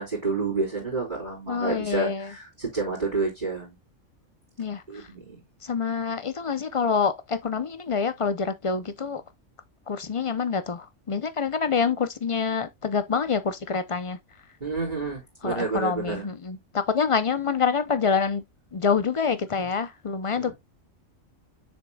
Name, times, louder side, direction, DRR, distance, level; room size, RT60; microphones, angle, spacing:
voice 1, 0.0-3.8 4.9-5.4 14.6-16.3 19.6-19.7 20.4-20.5, right 3 dB, 35° right, 3.6 m, -29 dB
voice 2, 1.5-2.3 4.6-5.1 5.6-9.2 9.9-14.2 15.4-18.4 18.7-20.5, left 5 dB, 40° left, 0.4 m, -26 dB
7.3 x 6.0 x 2.2 m
omnidirectional pair, 1.3 m